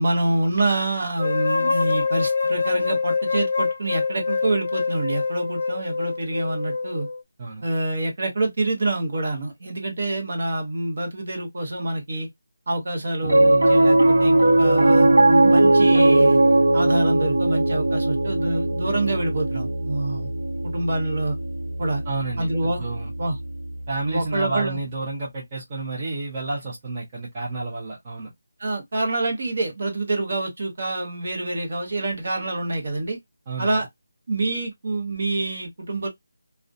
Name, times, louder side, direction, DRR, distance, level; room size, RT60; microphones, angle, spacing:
voice 1, 0.0-7.1 7.6-12.3 12.7-16.4 16.7-20.3 20.6-21.4 21.8-22.0 22.4-22.8 23.2-23.4 24.0-24.8 28.6-33.2 33.6-33.9 34.3-36.1, right 2 dB, 35° right, 0.8 m, -26 dB
sound 1, 1.2-7.2, left 4 dB, 55° left, 0.6 m, -25 dB
Piano, 13.2-23.7, right 2 dB, 75° right, 0.9 m, -19 dB
voice 2, 22.1-23.1 23.9-28.3 33.5-33.8, right 3 dB, 15° right, 0.5 m, -30 dB
2.4 x 2.1 x 2.5 m
figure-of-eight pair, 180°, 0 cm